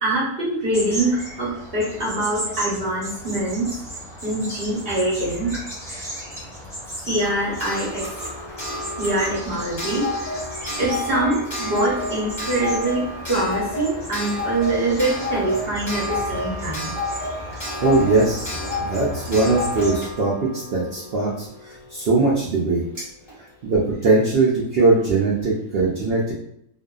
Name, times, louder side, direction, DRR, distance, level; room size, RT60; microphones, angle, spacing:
voice 1, 0.0-3.7 4.2-5.5 7.0-8.1 9.0-10.0 10.8-16.9, right 2 dB, 45° right, -7 dB, 0.8 m, -24 dB
sound 1, 0.7-20.0, equal, 5° left, 0.4 m, -35 dB
Clock, 7.2-21.8 22.9-23.0 23.3-23.4, left 2 dB, 20° left, 0.9 m, -31 dB
voice 2, 17.8-22.8 23.6-26.3, right 3 dB, 90° right, -4 dB, 0.5 m, -20 dB
2.6 x 2.3 x 2.3 m, 0.74 s
omnidirectional pair, 1.6 m